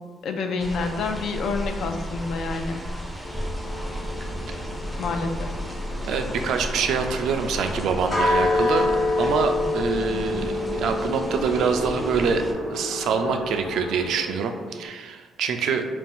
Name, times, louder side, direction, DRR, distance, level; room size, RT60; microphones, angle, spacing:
voice 1, 0.2-2.8 5.0-5.6, left 4 dB, 70° left, 5 dB, 0.3 m, -28 dB
sound 1, 0.6-12.5, equal, ahead, 0.4 m, -34 dB
sound 2, 1.2-14.3, left 1 dB, 85° left, 1.1 m, -40 dB
sound 3, 3.2-14.9, left 2 dB, 40° left, 1.2 m, -29 dB
voice 2, 6.0-8.9 9.2-12.4 12.7-15.9, right 6 dB, 75° right, 6 dB, 0.3 m, -25 dB
2.5 x 2.3 x 3.5 m, 1.4 s
cardioid pair, 95°, 0 cm